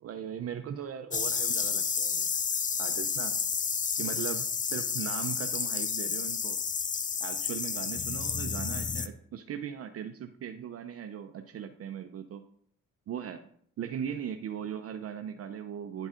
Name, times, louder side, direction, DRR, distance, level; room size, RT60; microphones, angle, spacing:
voice 1, 0.0-2.3 2.8-3.3 4.0-6.6 7.2-12.4 13.1-13.4 13.8-16.1, right 8 dB, 50° right, 7 dB, 0.6 m, -38 dB
sound 1, 1.1-9.1, left 6 dB, 25° left, 0.4 m, -31 dB
9.9 x 3.9 x 3.7 m, 0.62 s
cardioid pair, 90°, 30 cm